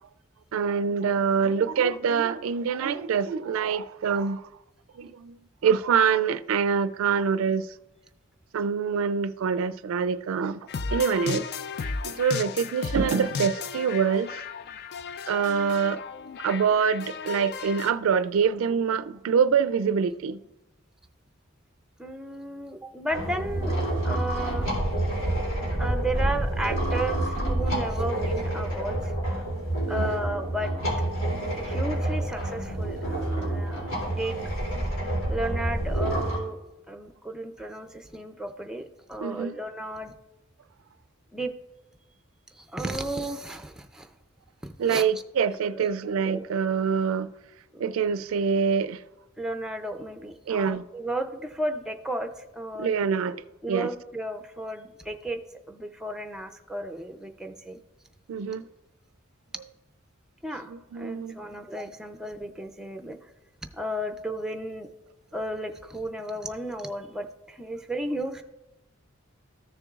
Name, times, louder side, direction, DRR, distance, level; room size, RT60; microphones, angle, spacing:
voice 1, 0.5-4.4 5.0-7.7 8.5-10.6 10.9-11.5 11.8-14.4 15.3-16.0 16.4-20.4 29.9-30.2 39.2-39.6 44.8-47.3 47.8-49.0 50.5-50.8 52.8-53.4 53.7-53.9 58.3-58.6 60.7-61.4, right 6 dB, 85° right, 0.3 m, -25 dB
sound 1, 10.7-17.9, left 5 dB, 55° left, 0.4 m, -34 dB
voice 2, 22.0-23.8 24.0-24.7 25.8-29.1 29.9-30.7 31.5-33.9 34.2-34.5 35.3-36.6 36.9-40.1 41.3-41.5 42.5-44.1 44.6-45.1 45.7-45.9 46.2-46.4 47.7-47.8 49.4-53.1 53.6-55.4 55.7-57.8 60.4-63.2 63.7-64.9 65.3-68.4, right 1 dB, 5° right, 0.5 m, -34 dB
sound 2, 23.1-36.4, right 1 dB, 75° left, 3.1 m, -28 dB
13.5 x 6.8 x 2.4 m
head